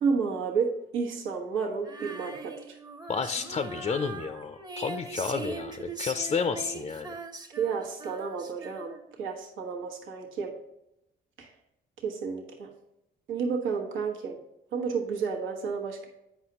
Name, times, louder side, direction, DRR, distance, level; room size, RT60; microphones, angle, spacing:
voice 1, 0.0-2.8 6.3-6.4 7.6-10.5 11.4-11.5 12.0-12.7 13.3-14.4 14.7-16.1, right 5 dB, 80° right, 0 dB, 1.2 m, -31 dB
Female singing, 1.8-9.2, right 3 dB, 20° right, 0.8 m, -41 dB
voice 2, 3.1-7.1, left 5 dB, 30° left, 8 dB, 0.4 m, -31 dB
8.0 x 5.6 x 2.9 m, 0.86 s
cardioid pair, 90°, 20 cm